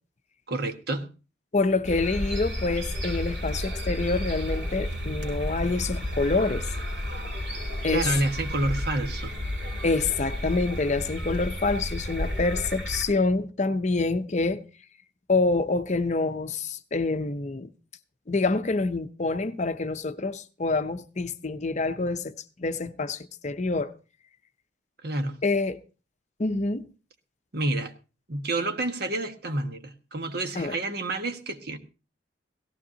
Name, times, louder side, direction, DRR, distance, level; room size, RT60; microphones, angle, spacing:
voice 1, 0.5-1.1 7.9-9.3 25.0-25.4 27.5-27.9 28.3-31.8, right 2 dB, 60° right, 1.4 m, -29 dB
voice 2, 1.5-6.7 7.8-8.1 9.8-14.6 15.3-17.7 18.3-23.9 25.4-25.8 26.4-26.8 30.6-30.8, left 3 dB, 40° left, 0.7 m, -26 dB
sound 1, 1.8-13.0, left 1 dB, 85° right, 6.0 m, -32 dB
17.0 x 15.0 x 2.8 m
head